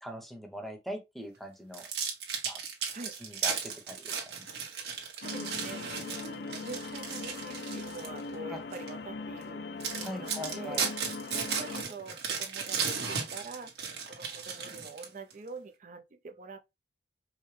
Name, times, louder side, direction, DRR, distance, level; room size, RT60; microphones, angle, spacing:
voice 1, 0.0-1.8 2.4-2.6 3.2-4.4 8.5-8.6 9.9-10.9, equal, ahead, 0.9 m, -41 dB
sound 1, 1.7-8.2 8.7-8.9 9.4-9.5 9.8-15.3, right 6 dB, 70° right, 1.2 m, -35 dB
sound 2, 5.2-11.8, left 3 dB, 65° left, 0.4 m, -40 dB
voice 2, 5.2-9.6 10.1-10.8 11.3-13.7 14.1-16.6, right 3 dB, 45° right, 0.5 m, -45 dB
4.8 x 2.1 x 3.2 m
head